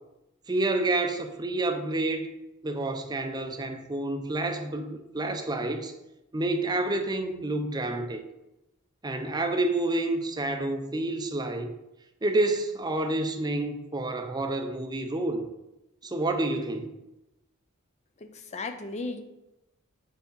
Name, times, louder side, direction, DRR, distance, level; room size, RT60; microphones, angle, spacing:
voice 1, 0.5-2.3 2.6-5.9 6.3-8.2 9.0-11.7 12.2-15.5 16.0-16.9, right 2 dB, 20° right, 6 dB, 0.6 m, -29 dB
voice 2, 18.2-19.2, left 3 dB, 30° left, 7 dB, 0.5 m, -35 dB
4.7 x 4.6 x 5.4 m, 0.94 s
head